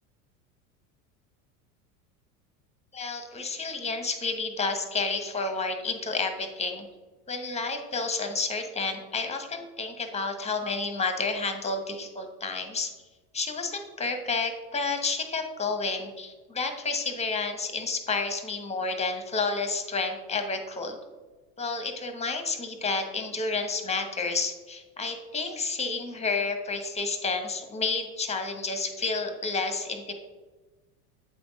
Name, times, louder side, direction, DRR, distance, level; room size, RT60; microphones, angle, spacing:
voice 1, 2.9-6.9 7.3-12.9 13.3-21.0 21.6-30.1, left 4 dB, 15° left, 7 dB, 1.0 m, -30 dB
8.4 x 3.5 x 5.2 m, 1.2 s
hypercardioid pair, 100°, 43 cm